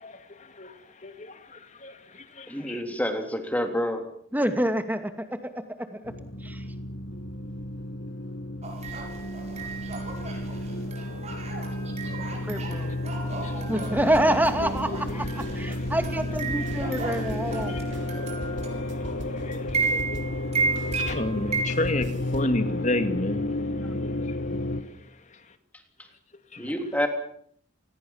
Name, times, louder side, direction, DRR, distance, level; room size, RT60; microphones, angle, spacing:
voice 1, 0.0-2.8 12.6-12.8 13.2-13.8 14.6-15.9 16.6-16.7 17.5-20.3 20.9-24.6 24.9-25.4 26.5-26.7, left 2 dB, 35° left, 2.6 m, -34 dB
voice 2, 2.5-4.1 23.8-23.9 26.6-27.1, equal, 5° left, 3.4 m, -28 dB
voice 3, 4.3-5.4 5.9-6.0 6.4-6.6 12.4-13.0 13.7-15.2 15.5-17.8, right 1 dB, 10° right, 2.4 m, -26 dB
sound 1, 6.0-24.8, left 1 dB, 60° left, 2.1 m, -32 dB
sound 2, 8.6-21.7, right 4 dB, 35° right, 7.4 m, -34 dB
sound 3, 13.8-20.5 20.8-22.6, equal, 60° right, 3.0 m, -41 dB
28.0 x 21.5 x 7.4 m
head